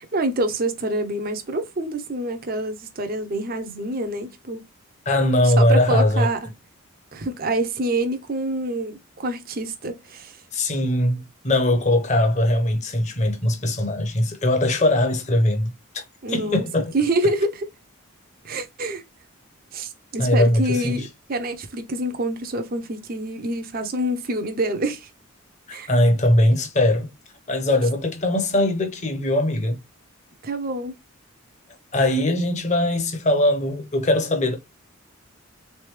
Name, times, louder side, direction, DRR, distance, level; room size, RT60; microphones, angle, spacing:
voice 1, 0.1-4.6 5.4-6.4 7.1-10.4 16.2-16.7 16.9-17.7 18.4-19.0 19.7-25.1 25.7-25.9 30.4-30.9, right 1 dB, 40° right, 0.6 m, -26 dB
voice 2, 5.1-6.3 10.5-16.9 20.2-21.1 25.9-27.1 27.5-29.8 31.9-34.6, left 1 dB, 30° left, 0.8 m, -21 dB
3.7 x 3.4 x 3.1 m
head